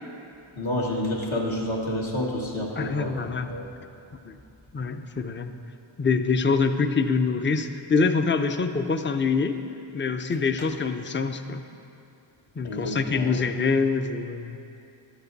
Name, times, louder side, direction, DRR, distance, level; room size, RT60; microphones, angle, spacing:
voice 1, 0.5-3.1 3.4-3.7 10.6-10.7 12.6-13.4, left 1 dB, 70° left, -3 dB, 1.7 m, -29 dB
voice 2, 2.8-3.5 4.2-4.4 4.7-5.5 6.0-9.6 9.9-11.7 12.6-14.8, left 4 dB, 25° left, 8 dB, 0.5 m, -25 dB
12.5 x 8.0 x 4.0 m, 2.7 s
wide cardioid pair, 65°, 48 cm